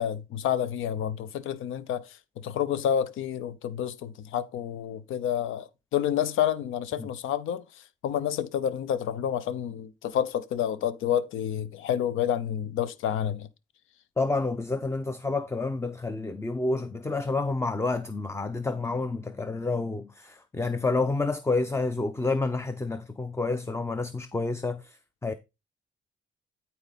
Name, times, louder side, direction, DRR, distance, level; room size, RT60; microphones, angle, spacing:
voice 1, 0.0-13.5, left 9 dB, 85° left, 0.8 m, -29 dB
voice 2, 14.2-25.3, left 3 dB, 15° left, 0.7 m, -29 dB
12.5 x 4.3 x 4.1 m
cardioid pair, 90°, 20 cm